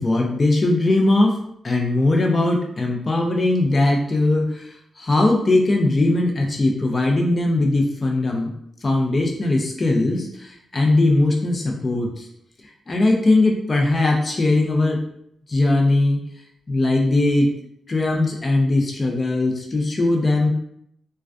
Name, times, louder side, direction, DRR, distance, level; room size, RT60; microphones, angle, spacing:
voice 1, 0.0-1.4 1.6-4.7 5.0-8.5 8.8-12.3 12.9-15.0 15.5-16.2 16.7-17.5 17.9-20.5, left 2 dB, 40° left, 0 dB, 0.6 m, -19 dB
2.3 x 2.2 x 2.5 m, 0.72 s
cardioid pair, 60°, 0 cm